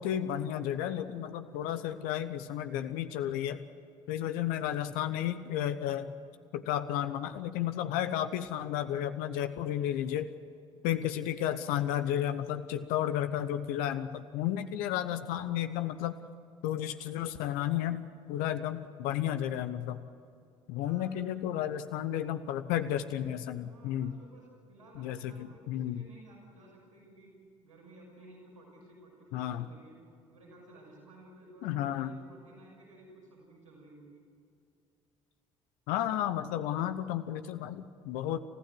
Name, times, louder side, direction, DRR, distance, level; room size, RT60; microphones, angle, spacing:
voice 1, 0.0-3.6 4.1-6.1 6.5-10.3 10.8-16.2 16.6-20.0 20.7-24.1 25.0-26.0 29.3-29.6 31.6-32.1 35.9-38.4, left 11 dB, 60° left, 10 dB, 0.9 m, -32 dB
voice 2, 20.7-21.6 23.6-27.3 27.6-30.0 30.3-34.2, right 1 dB, 85° right, -4 dB, 6.2 m, -55 dB
28.5 x 15.5 x 7.8 m, 2.4 s
figure-of-eight pair, 50°, 16 cm